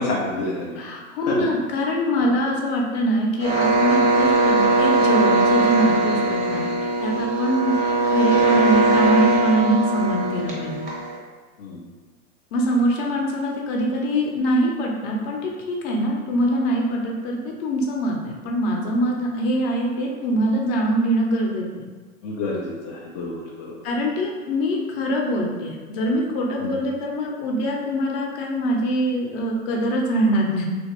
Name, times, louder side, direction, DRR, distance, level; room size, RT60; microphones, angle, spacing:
voice 1, 0.0-0.9 1.3-1.5 2.2-2.3 11.6-11.8 22.2-23.8 26.6-26.7, left 2 dB, 30° left, -4 dB, 0.3 m, -28 dB
voice 2, 0.8-6.6 7.0-7.8 8.1-10.9 12.5-21.8 23.8-30.6, equal, 45° left, 0 dB, 0.7 m, -23 dB
sound 1, 3.4-11.2, right 2 dB, 20° right, 0.6 m, -20 dB
3.1 x 2.5 x 2.8 m, 1.4 s
figure-of-eight pair, 95°, 42 cm